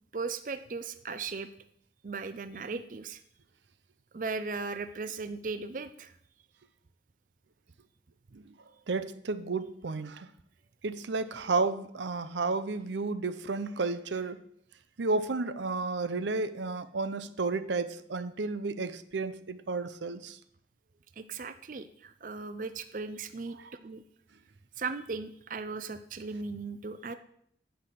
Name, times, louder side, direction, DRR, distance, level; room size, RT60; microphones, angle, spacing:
voice 1, 0.1-1.5 2.0-3.2 4.1-6.1 21.2-24.0 24.8-27.1, right 4 dB, 45° right, 0.5 m, -37 dB
voice 2, 8.9-10.3 10.8-14.4 15.0-20.4, right 3 dB, 85° right, 0.6 m, -32 dB
9.5 x 5.9 x 7.8 m
head